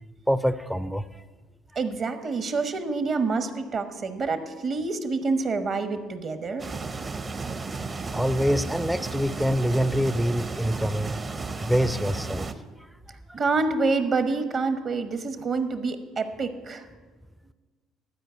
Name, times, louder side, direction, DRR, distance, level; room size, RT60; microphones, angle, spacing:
voice 1, 0.3-1.2 8.1-11.2 11.6-12.5, equal, ahead, 12 dB, 0.4 m, -25 dB
voice 2, 1.8-6.7 13.3-16.9, right 4 dB, 50° right, 9 dB, 1.1 m, -27 dB
sound 1, 6.6-12.5, right 4 dB, 30° right, 0.7 m, -34 dB
12.0 x 5.0 x 8.0 m, 1.4 s
supercardioid pair, 80°, 0 cm